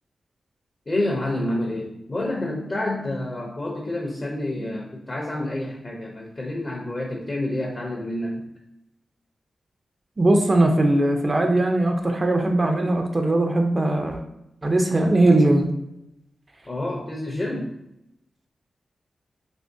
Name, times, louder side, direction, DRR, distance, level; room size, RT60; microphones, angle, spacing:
voice 1, 0.9-8.4 16.7-17.7, left 1 dB, 30° left, -1 dB, 0.6 m, -28 dB
voice 2, 10.2-14.2 14.6-15.7, right 1 dB, 25° right, 3 dB, 0.4 m, -20 dB
3.4 x 3.1 x 2.6 m, 0.83 s
wide cardioid pair, 125°, 0 cm